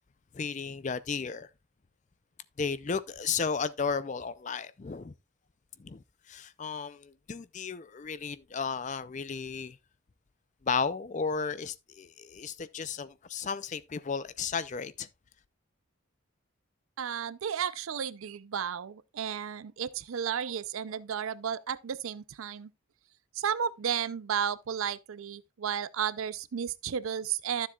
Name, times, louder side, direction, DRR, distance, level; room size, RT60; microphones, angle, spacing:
voice 1, 0.3-1.5 2.6-5.1 5.8-9.8 10.6-15.1, left 5 dB, 35° left, 0.4 m, -34 dB
voice 2, 17.0-22.7 23.4-27.7, right 8 dB, 75° right, 0.5 m, -33 dB
12.0 x 7.2 x 2.3 m
head